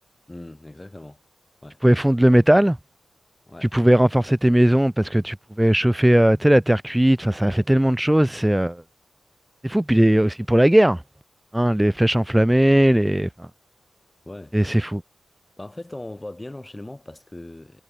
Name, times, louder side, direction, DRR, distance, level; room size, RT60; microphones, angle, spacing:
voice 1, 0.3-1.2 1.6-1.8 3.5-3.7 14.3-14.6 15.6-17.8, left 1 dB, 15° left, 4.2 m, -39 dB
voice 2, 1.8-2.8 3.7-8.8 9.6-11.0 11.5-13.5 14.5-15.0, right 1 dB, 10° right, 0.5 m, -18 dB
wide cardioid pair, 100°, 0 cm